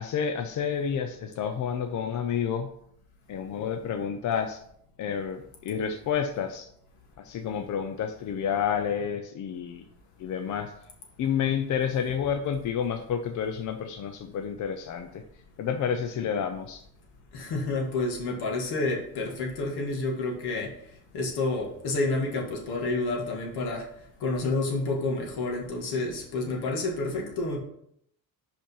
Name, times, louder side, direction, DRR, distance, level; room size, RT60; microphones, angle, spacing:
voice 1, 0.0-2.7 3.3-4.6 5.0-6.7 7.2-9.8 10.2-10.7 11.2-15.2 15.6-16.8, left 7 dB, 50° left, 6 dB, 0.5 m, -29 dB
voice 2, 17.3-20.7 21.1-23.8 24.2-27.6, left 2 dB, 75° left, 0 dB, 2.0 m, -29 dB
5.2 x 5.2 x 5.5 m, 0.71 s
cardioid pair, 170°, 39 cm